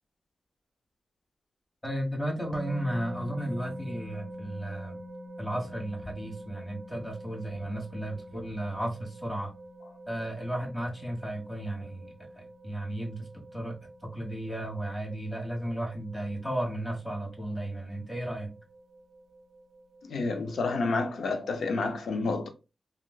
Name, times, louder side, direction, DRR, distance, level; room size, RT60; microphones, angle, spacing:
voice 1, 1.8-5.0 5.4-9.5 10.1-13.8 14.1-18.5, right 1 dB, 25° left, 1.5 m, -34 dB
sound 1, 2.5-21.9, equal, 45° right, 0.5 m, -46 dB
voice 2, 20.0-22.5, left 3 dB, 85° left, 0.5 m, -29 dB
3.1 x 2.4 x 2.3 m
cardioid pair, 45°, 0 cm